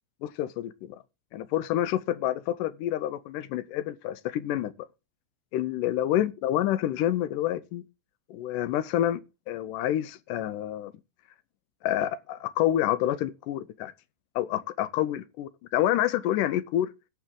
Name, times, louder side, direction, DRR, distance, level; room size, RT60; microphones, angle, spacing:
voice 1, 0.2-1.0 1.3-4.9 5.5-7.8 8.3-9.2 9.5-10.9 11.8-13.9 14.4-16.9, left 12 dB, 80° left, 2.3 m, -28 dB
18.0 x 6.0 x 3.7 m
omnidirectional pair, 3.7 m